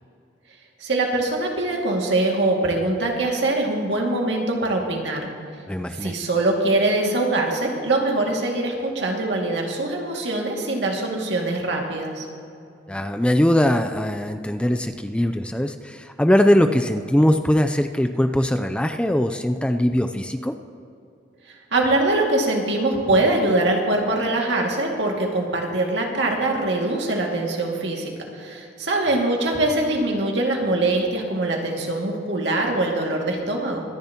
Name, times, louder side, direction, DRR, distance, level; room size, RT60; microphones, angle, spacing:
voice 1, 0.8-5.2 5.9-12.3 21.5-33.8, right 2 dB, 75° right, 0 dB, 2.1 m, -23 dB
voice 2, 5.7-6.1 12.9-20.5, left 1 dB, 5° left, 7 dB, 0.4 m, -21 dB
24.0 x 10.5 x 2.9 m, 2.6 s
head